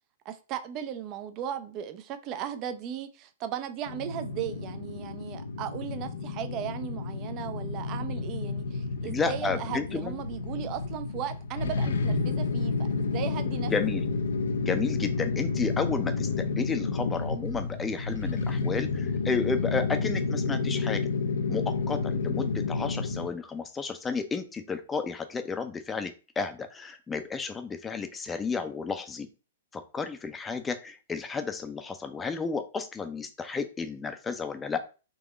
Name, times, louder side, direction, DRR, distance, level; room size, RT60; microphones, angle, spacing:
voice 1, 0.2-12.7 13.0-13.7, right 9 dB, 35° right, 0.5 m, -36 dB
sound 1, 3.9-23.3, left 4 dB, 70° left, 0.5 m, -30 dB
voice 2, 9.0-10.1 13.6-14.0 14.6-21.1 21.5-29.3 29.7-34.8, left 5 dB, 15° left, 0.5 m, -32 dB
3.9 x 2.9 x 3.6 m
figure-of-eight pair, 110°, 0 cm